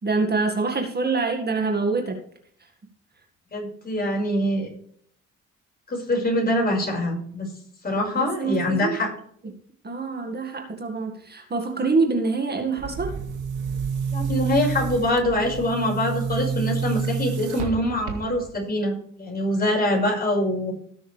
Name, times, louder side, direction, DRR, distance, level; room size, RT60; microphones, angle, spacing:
voice 1, 0.0-2.2 2.6-2.7 8.1-9.0 9.8-13.1, right 4 dB, 35° right, 3 dB, 1.9 m, -25 dB
voice 2, 3.5-4.7 5.9-7.5 7.8-9.1 14.1-20.7, left 1 dB, 30° left, -1 dB, 5.4 m, -24 dB
Boom, 12.8-18.6, right 6 dB, 85° right, 2.0 m, -29 dB
18.0 x 6.4 x 3.3 m, 0.63 s
cardioid pair, 90°, 30 cm